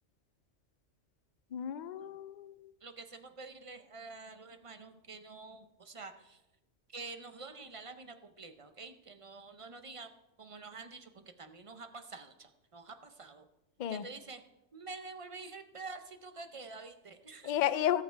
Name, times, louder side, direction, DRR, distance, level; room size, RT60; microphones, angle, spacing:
voice 1, 1.5-2.7 13.8-14.1 17.4-18.0, left 11 dB, 55° left, 14 dB, 0.5 m, -32 dB
voice 2, 2.8-6.4 6.9-10.1 10.4-13.5 13.9-14.4 14.7-17.5, right 4 dB, 35° right, 8 dB, 0.6 m, -48 dB
16.0 x 6.7 x 4.5 m, 0.97 s
omnidirectional pair, 1.3 m